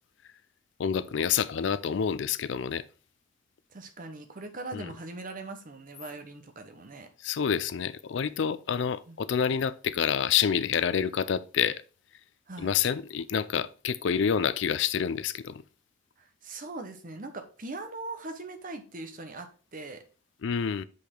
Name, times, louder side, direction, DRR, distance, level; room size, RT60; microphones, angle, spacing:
voice 1, 0.8-2.8 4.7-4.9 7.2-11.8 12.6-15.6 20.4-20.8, left 7 dB, 65° left, 0.4 m, -28 dB
voice 2, 3.7-7.1 9.1-9.2 12.5-12.7 16.2-20.0, right 2 dB, 45° right, 1.0 m, -41 dB
6.6 x 5.3 x 3.7 m
head